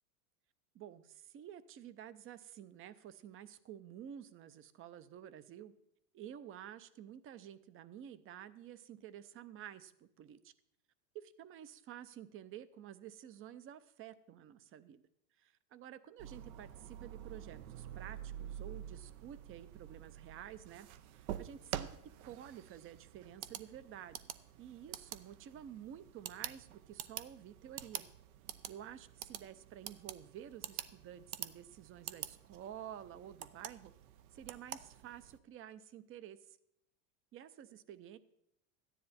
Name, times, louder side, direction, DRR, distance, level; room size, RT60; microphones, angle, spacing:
voice 1, 0.7-5.7 6.1-10.5 11.1-15.0 15.4-20.9 21.1-24.2 24.6-28.1 28.7-33.9 34.3-36.6 37.3-38.2, right 10 dB, 30° right, 16 dB, 0.6 m, -51 dB
sound 1, 16.2-35.4, right 11 dB, 70° right, 0.9 m, -48 dB
13.5 x 10.0 x 4.2 m, 0.80 s
supercardioid pair, 125°, 45 cm